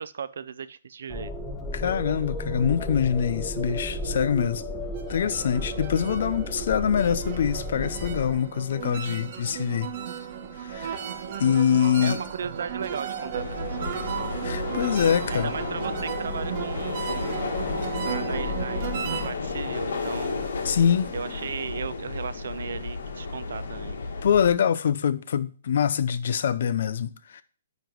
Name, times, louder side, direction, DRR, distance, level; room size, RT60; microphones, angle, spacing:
voice 1, 0.0-1.3 12.0-14.1 15.3-20.5 21.1-24.0, right 6 dB, 75° right, 0.5 m, -36 dB
sound 1, 1.1-8.3, left 1 dB, 5° left, 1.0 m, -34 dB
voice 2, 1.7-4.6 5.1-9.9 10.6-11.0 11.4-12.2 14.4-15.5 20.6-21.1 24.2-27.4, left 8 dB, 60° left, 0.5 m, -24 dB
sound 2, 4.9-19.3, right 8 dB, 40° right, 1.1 m, -35 dB
sound 3, 13.4-24.5, left 4 dB, 80° left, 1.4 m, -32 dB
9.3 x 3.1 x 5.2 m
hypercardioid pair, 160°, 0 cm